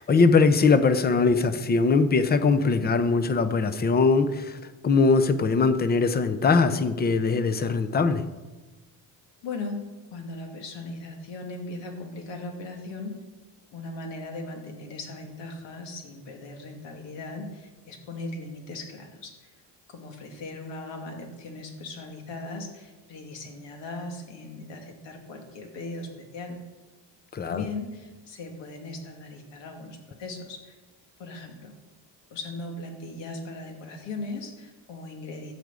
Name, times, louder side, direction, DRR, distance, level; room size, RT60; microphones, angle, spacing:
voice 1, 0.0-4.6 4.8-8.2 27.3-27.6, left 4 dB, 20° left, 11 dB, 0.6 m, -21 dB
voice 2, 9.4-9.8 10.1-13.2 13.7-19.5 19.9-26.6 27.4-30.7 31.2-31.7 32.3-35.5, left 2 dB, 80° left, 2 dB, 2.4 m, -38 dB
13.0 x 5.0 x 8.2 m, 1.2 s
cardioid pair, 150°, 43 cm